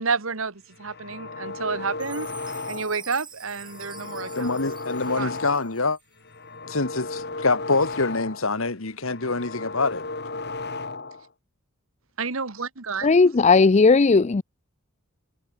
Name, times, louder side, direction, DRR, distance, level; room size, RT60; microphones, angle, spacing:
voice 1, 0.0-2.3 2.7-4.5 5.0-5.3 12.2-13.1, right 4 dB, 65° right, 1.6 m, -30 dB
sound 1, 0.7-3.1 3.5-5.8 6.2-8.6 8.9-11.3, left 3 dB, 50° left, 4.0 m, -35 dB
Chime, 2.0-6.2, right 7 dB, 20° right, 8.0 m, -47 dB
voice 2, 4.4-6.0 6.6-10.0, left 3 dB, 70° left, 1.9 m, -25 dB
voice 3, 13.0-14.4, left 4 dB, 30° left, 0.4 m, -16 dB
head